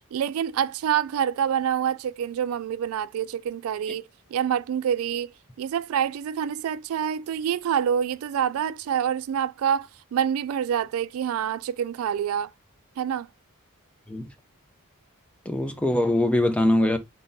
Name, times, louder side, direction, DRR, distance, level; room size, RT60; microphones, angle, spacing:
voice 1, 0.1-4.0 4.3-5.3 5.6-12.5 13.0-13.3, right 8 dB, 70° right, 0.3 m, -26 dB
voice 2, 15.5-17.0, left 1 dB, 5° left, 0.5 m, -22 dB
4.4 x 3.7 x 2.6 m
head